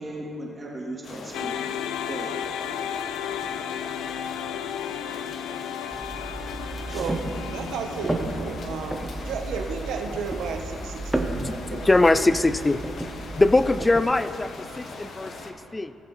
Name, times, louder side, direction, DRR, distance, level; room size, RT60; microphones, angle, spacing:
voice 1, 0.0-1.7 2.0-2.4, right 1 dB, 25° right, -6 dB, 3.0 m, -36 dB
sound 1, 1.0-15.5, left 3 dB, 60° left, 1.2 m, -41 dB
sound 2, 1.3-9.6, left 9 dB, 90° left, 0.4 m, -34 dB
sound 3, 5.9-14.0, right 1 dB, 10° right, 1.1 m, -33 dB
voice 2, 7.5-11.9, right 5 dB, 80° right, 4 dB, 1.1 m, -33 dB
voice 3, 11.4-12.8 13.1-16.0, left 2 dB, 15° left, 13 dB, 0.3 m, -22 dB
20.0 x 7.3 x 3.3 m, 2.6 s
cardioid pair, 90°, 0 cm